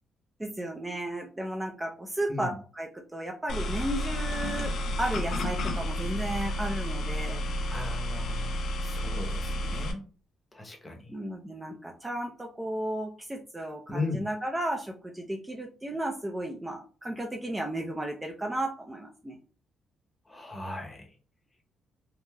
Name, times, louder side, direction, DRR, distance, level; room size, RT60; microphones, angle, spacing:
voice 1, 0.4-2.5 2.8-4.7 5.0-7.4 11.1-19.4, right 1 dB, 15° right, 2 dB, 0.4 m, -34 dB
voice 2, 2.3-2.6 7.7-10.0 10.5-11.2 13.9-14.3 20.2-21.2, left 3 dB, 20° left, 2 dB, 0.8 m, -37 dB
sound 1, 3.5-9.9, left 1 dB, 65° left, 0.5 m, -31 dB
3.2 x 2.5 x 2.2 m, 0.38 s
cardioid pair, 90°, 0 cm